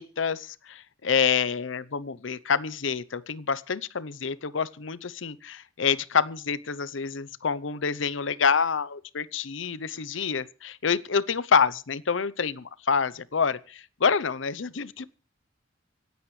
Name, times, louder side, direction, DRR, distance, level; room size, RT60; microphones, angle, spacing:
voice 1, 0.0-15.0, left 6 dB, 75° left, 0.7 m, -27 dB
26.0 x 9.4 x 3.2 m
head